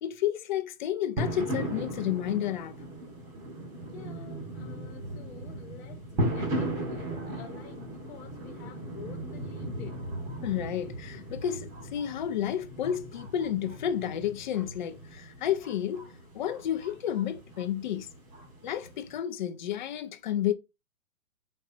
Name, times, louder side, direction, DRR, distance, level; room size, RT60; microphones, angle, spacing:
voice 1, 0.0-2.7 10.4-16.1 16.3-18.1 18.6-20.5, left 10 dB, 35° left, 0.6 m, -31 dB
sound 1, 1.2-19.2, right 1 dB, 20° right, 1.2 m, -37 dB
voice 2, 3.8-10.0, left 8 dB, 55° left, 1.3 m, -49 dB
4.6 x 4.3 x 2.6 m
hypercardioid pair, 160°, 42 cm